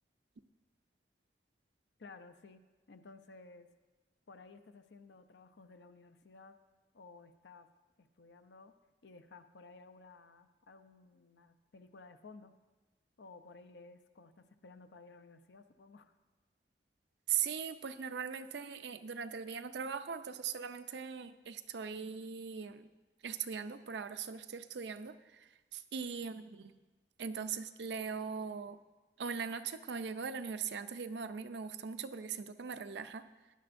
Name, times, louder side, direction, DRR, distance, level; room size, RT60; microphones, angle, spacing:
voice 1, 2.0-3.7 4.3-6.6 6.9-7.7 8.0-8.7 9.0-12.6 13.2-16.1, left 3 dB, 85° left, 9 dB, 0.6 m, -56 dB
voice 2, 17.3-22.9 23.2-26.8 27.2-28.8 29.2-33.2, right 6 dB, 80° right, 10 dB, 0.5 m, -40 dB
15.5 x 11.0 x 2.6 m, 1.2 s
head